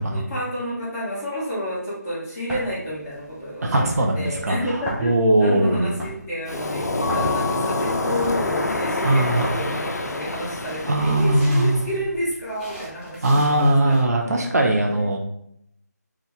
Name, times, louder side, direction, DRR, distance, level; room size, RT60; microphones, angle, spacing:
voice 1, 0.1-4.7 5.0-14.3, equal, 15° left, -10 dB, 1.5 m, -30 dB
sound 1, 2.5-14.0, equal, 5° right, 0.5 m, -38 dB
voice 2, 3.6-4.6 5.0-5.9 9.0-9.5 10.9-11.8 13.2-15.2, right 1 dB, 60° right, 1 dB, 0.7 m, -20 dB
Waves surf, 6.5-11.9, left 2 dB, 65° left, 0.6 m, -27 dB
Mallet percussion, 7.0-8.8, left 10 dB, 45° left, 1.4 m, -33 dB
4.5 x 2.5 x 3.6 m, 0.73 s
figure-of-eight pair, 160°, 10 cm